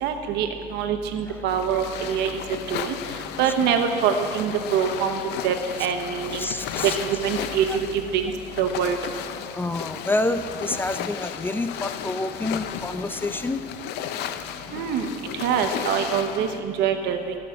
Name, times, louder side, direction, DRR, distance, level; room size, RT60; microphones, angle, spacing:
voice 1, 0.0-2.3 2.7-3.0 3.4-5.5 5.8-6.5 6.8-8.3 8.6-9.0 14.7-15.1 15.4-17.4, right 8 dB, 85° right, 6 dB, 0.9 m, -24 dB
sound 1, 1.5-16.6, left 10 dB, 80° left, 0.5 m, -34 dB
voice 2, 6.4-7.0 7.7-7.8 9.5-13.6, left 2 dB, 10° left, 9 dB, 0.4 m, -28 dB
14.5 x 5.7 x 5.2 m, 2.3 s
cardioid pair, 110°, 17 cm